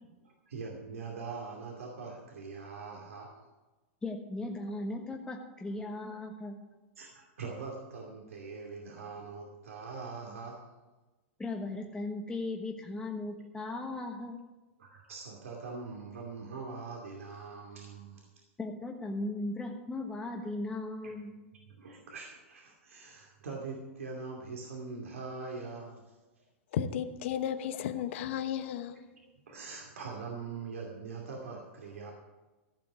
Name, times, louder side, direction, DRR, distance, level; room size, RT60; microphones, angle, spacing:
voice 1, 0.2-3.4 6.0-6.2 7.0-10.6 14.8-18.2 20.4-20.5 21.0-21.1 21.8-26.0 28.4-28.5 29.5-32.1, right 4 dB, 85° right, 2.5 m, -42 dB
voice 2, 4.0-6.6 11.4-14.4 18.6-21.3, left 2 dB, 10° left, 1.3 m, -37 dB
voice 3, 26.7-29.0, left 9 dB, 65° left, 1.0 m, -34 dB
15.0 x 5.9 x 8.2 m
hypercardioid pair, 110°, 7 cm